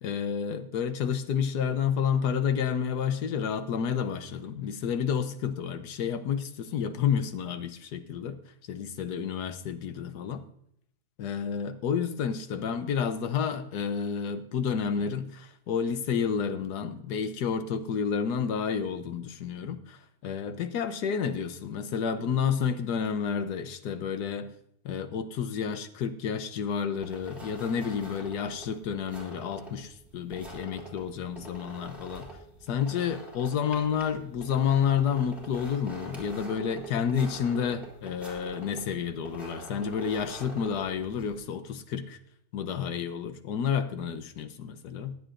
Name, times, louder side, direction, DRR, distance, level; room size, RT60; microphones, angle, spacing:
voice 1, 0.0-8.4 8.7-10.4 11.2-24.5 24.8-32.3 32.7-42.2 42.5-45.2, left 7 dB, 80° left, 1.4 m, -30 dB
sound 1, 27.0-41.4, right 2 dB, ahead, 3.1 m, -45 dB
20.5 x 8.0 x 2.5 m
omnidirectional pair, 1.7 m